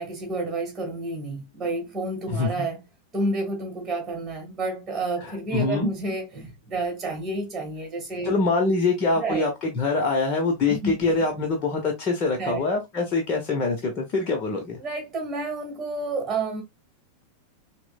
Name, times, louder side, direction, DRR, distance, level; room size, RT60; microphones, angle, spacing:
voice 1, 0.0-2.8 3.1-8.3 9.1-9.5 10.7-11.0 12.4-12.6 14.7-16.6, right 2 dB, 15° right, 1.4 m, -30 dB
voice 2, 2.3-2.7 5.2-5.9 8.2-14.8, left 3 dB, 30° left, 0.8 m, -24 dB
5.8 x 2.1 x 2.3 m
figure-of-eight pair, 90°, 0 cm